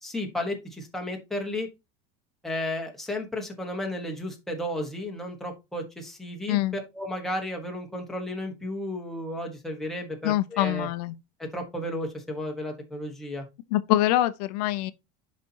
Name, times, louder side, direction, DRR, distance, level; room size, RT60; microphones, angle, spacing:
voice 1, 0.0-1.7 2.4-6.6 6.9-10.9 11.5-13.4, left 1 dB, ahead, 1.2 m, -33 dB
voice 2, 10.2-11.1 13.7-14.9, left 15 dB, 70° left, 0.6 m, -24 dB
10.5 x 4.1 x 2.8 m
cardioid pair, 175°, 20 cm